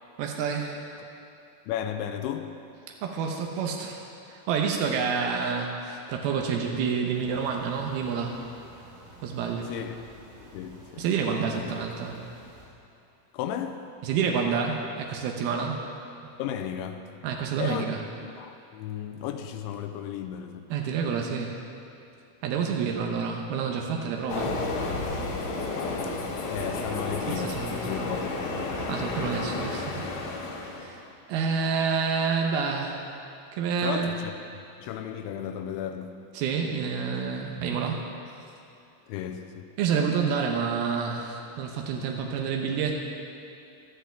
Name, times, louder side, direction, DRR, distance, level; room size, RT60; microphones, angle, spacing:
voice 1, 0.2-0.9 3.0-8.5 9.2-9.7 11.0-12.2 14.0-15.9 17.2-18.0 20.7-21.6 22.4-24.6 27.3-28.2 28.9-30.1 30.6-31.0 31.3-33.1 33.5-34.2 36.3-38.1 39.8-42.9, right 6 dB, 85° right, 1 dB, 2.1 m, -28 dB
voice 2, 1.7-2.6 9.7-10.0 10.4-11.0 11.6-11.7 13.3-13.9 16.4-17.2 17.6-17.9 18.2-20.7 26.0-28.9 33.8-34.3 34.8-36.2 39.1-39.7, left 9 dB, 85° left, 7 dB, 2.8 m, -35 dB
sound 1, 7.1-12.7, right 1 dB, 65° right, 5.9 m, -50 dB
Train, 24.3-31.0, left 3 dB, 65° left, 2.6 m, -32 dB
17.0 x 12.5 x 3.4 m, 2.8 s
omnidirectional pair, 5.6 m